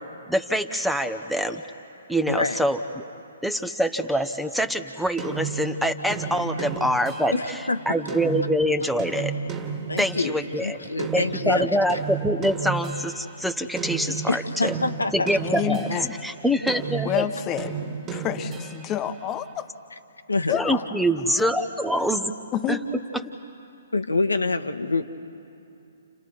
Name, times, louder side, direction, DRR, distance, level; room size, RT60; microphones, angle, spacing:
voice 1, 0.3-1.6 2.1-3.0 3.4-7.3 7.9-9.3 10.0-14.7 15.1-15.9 16.2-17.3 20.5-22.3 22.7-22.8, equal, ahead, 8 dB, 0.9 m, -25 dB
voice 2, 2.3-2.6 6.6-6.7 7.3-7.9 9.9-11.7 14.3-15.3 15.9-16.0 18.1-18.2 20.3-20.5 23.9-25.0, left 3 dB, 85° left, 7 dB, 1.3 m, -26 dB
sound 1, 5.2-10.5 11.0-16.3 16.7-19.1, right 5 dB, 20° right, 2.1 m, -33 dB
voice 3, 15.3-16.1 17.0-17.8 18.1-19.7 20.5-20.8 21.3-21.5 21.9-22.1 22.5-22.9 23.2-23.3, left 10 dB, 25° left, 8 dB, 1.1 m, -29 dB
29.5 x 29.5 x 4.7 m, 2.7 s
figure-of-eight pair, 130°, 0 cm